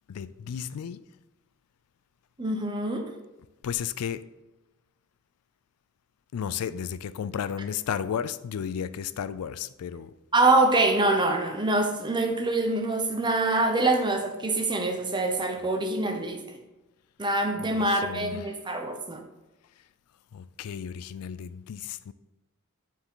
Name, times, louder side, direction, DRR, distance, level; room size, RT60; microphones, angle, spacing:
voice 1, 0.1-1.0 3.6-4.2 6.3-10.1 17.6-18.5 20.3-22.1, left 8 dB, 80° left, 14 dB, 0.4 m, -33 dB
voice 2, 2.4-3.1 10.3-16.4 17.2-19.2, right 2 dB, 20° right, 4 dB, 0.8 m, -25 dB
9.5 x 4.5 x 3.8 m, 1.0 s
head